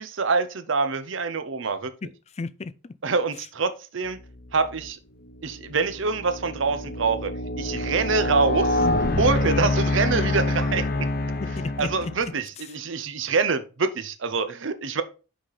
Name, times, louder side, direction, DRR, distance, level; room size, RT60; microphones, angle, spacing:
voice 1, 0.0-1.9 3.0-4.2 4.5-5.0 5.4-7.3 7.6-8.9 9.2-11.1 11.8-15.0, right 4 dB, 65° right, 0.7 m, -25 dB
voice 2, 2.4-2.9 9.4-9.7 11.4-12.3, left 3 dB, 30° left, 0.4 m, -33 dB
sound 1, 4.6-4.9 5.5-12.3, left 2 dB, 45° left, 0.8 m, -26 dB
6.1 x 4.9 x 4.1 m
head